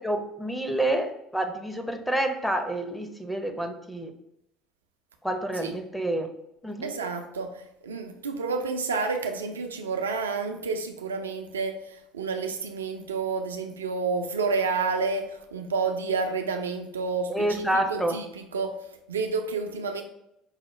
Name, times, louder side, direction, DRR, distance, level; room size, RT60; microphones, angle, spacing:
voice 1, 0.0-4.1 5.2-6.3 6.6-6.9 17.3-18.2, right 1 dB, 5° left, 5 dB, 0.6 m, -28 dB
voice 2, 6.8-20.0, right 4 dB, 80° right, 5 dB, 0.4 m, -30 dB
5.4 x 2.1 x 3.0 m, 0.81 s
figure-of-eight pair, 65°, 0 cm